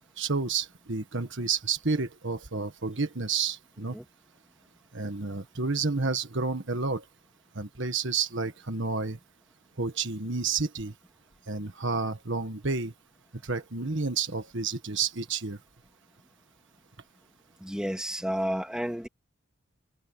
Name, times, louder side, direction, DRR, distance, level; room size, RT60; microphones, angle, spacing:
voice 1, 0.2-4.0 4.9-7.0 7.5-9.2 9.8-10.9 11.5-12.9 13.4-15.6, right 4 dB, 55° right, 1.6 m, -30 dB
voice 2, 17.6-19.1, equal, 5° right, 2.5 m, -31 dB
head